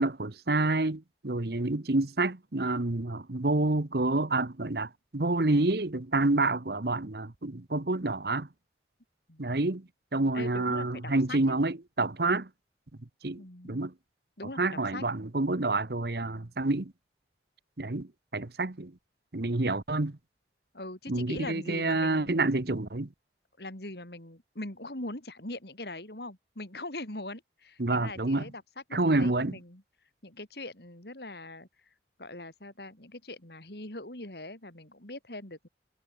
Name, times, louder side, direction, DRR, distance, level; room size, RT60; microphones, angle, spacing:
voice 1, 0.0-8.5 9.4-12.5 13.2-13.9 14.6-16.9 17.8-18.9 19.3-20.2 21.1-23.1 27.8-28.5 28.9-29.6, right 2 dB, 60° right, 1.2 m, -28 dB
voice 2, 10.3-11.6 13.4-13.8 14.4-15.0 20.7-22.9 23.6-28.6 28.9-29.8 30.2-31.7 32.2-35.7, left 2 dB, 65° left, 4.1 m, -42 dB
head